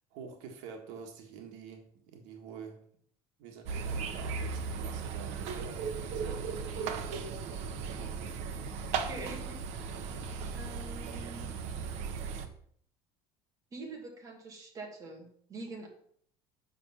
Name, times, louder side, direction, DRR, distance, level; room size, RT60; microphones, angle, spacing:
voice 1, 0.1-2.8 3.4-6.7 8.2-8.7, right 6 dB, 80° right, 3 dB, 1.7 m, -47 dB
sound 1, 3.7-12.5, right 5 dB, 60° right, 1.1 m, -37 dB
voice 2, 9.1-9.6 10.5-11.5 13.7-15.9, right 3 dB, 25° right, 0 dB, 2.3 m, -45 dB
8.3 x 6.1 x 5.7 m, 0.63 s
cardioid pair, 160°, 13 cm